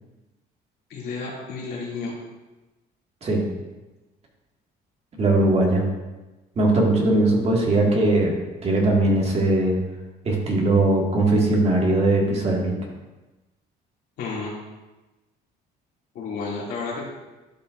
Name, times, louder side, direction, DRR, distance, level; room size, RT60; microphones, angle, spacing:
voice 1, 0.9-2.1 14.2-14.5 16.1-17.0, left 4 dB, 75° left, -6 dB, 2.5 m, -31 dB
voice 2, 5.2-5.8 6.6-8.4 8.6-9.7 10.2-12.7, right 2 dB, 40° right, -2 dB, 1.9 m, -20 dB
12.0 x 5.5 x 2.6 m, 1.1 s
cardioid pair, 110°, 17 cm